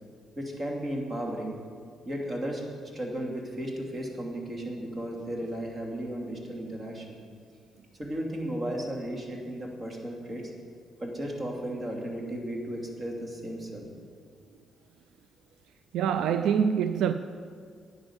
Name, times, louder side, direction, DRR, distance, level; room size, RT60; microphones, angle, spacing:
voice 1, 0.4-1.6 2.0-7.2 8.0-10.5 11.0-13.9, right 1 dB, 30° right, 2.7 m, -35 dB
voice 2, 15.9-17.1, right 8 dB, 80° right, 0.4 m, -25 dB
10.5 x 9.8 x 7.2 m
cardioid pair, 90°, 0 cm